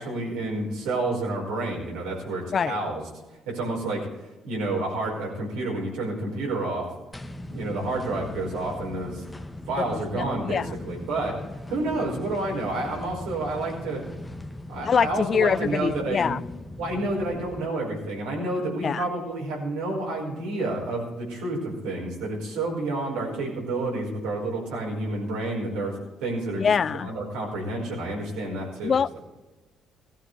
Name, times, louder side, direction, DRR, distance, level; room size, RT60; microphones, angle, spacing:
voice 1, 0.0-3.0 3.4-4.1 4.4-6.9 7.5-9.2 9.7-11.3 11.7-14.0 14.7-16.3 16.8-28.9, right 2 dB, 80° right, 5.0 m, -29 dB
sound 1, 7.1-17.7, left 1 dB, 15° left, 1.2 m, -39 dB
voice 2, 9.9-10.8 14.8-16.4 18.8-19.0 26.6-27.1 28.8-29.2, left 6 dB, 50° left, 0.4 m, -24 dB
17.0 x 14.5 x 3.4 m
hypercardioid pair, 55°, 0 cm